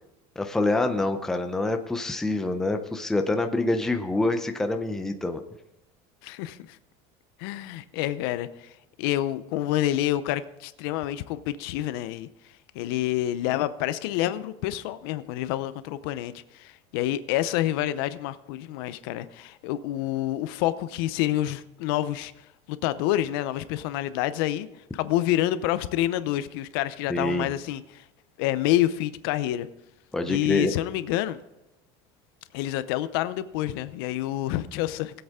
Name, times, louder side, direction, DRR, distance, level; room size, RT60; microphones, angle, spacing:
voice 1, 0.4-5.4 27.1-27.5 30.1-30.7, left 2 dB, 5° left, 6 dB, 0.5 m, -26 dB
voice 2, 6.2-6.8 7.4-8.7 9.0-12.3 12.7-22.3 22.7-24.7 24.9-28.0 28.4-29.7 30.2-31.4 32.5-35.2, left 14 dB, 70° left, 14 dB, 0.7 m, -28 dB
20.5 x 8.0 x 3.6 m, 0.91 s
cardioid pair, 180°, 13 cm